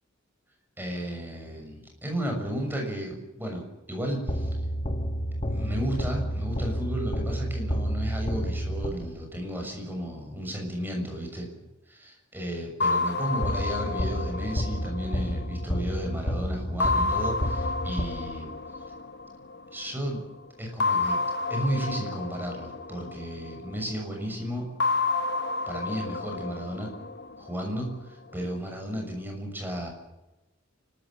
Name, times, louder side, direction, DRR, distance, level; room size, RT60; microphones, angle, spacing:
voice 1, 0.8-4.5 5.5-11.5 11.9-18.5 19.7-20.2 20.6-21.2 21.5-24.7 25.7-26.9 27.4-29.9, equal, 10° right, 2 dB, 6.7 m, -33 dB
sound 1, 4.3-9.4 13.4-18.6, equal, 30° left, 1.7 m, -30 dB
sound 2, 12.8-16.1 16.8-19.7 20.8-23.9 24.8-27.9, left 3 dB, 60° left, 1.1 m, -30 dB
29.0 x 14.0 x 8.9 m, 1.0 s
head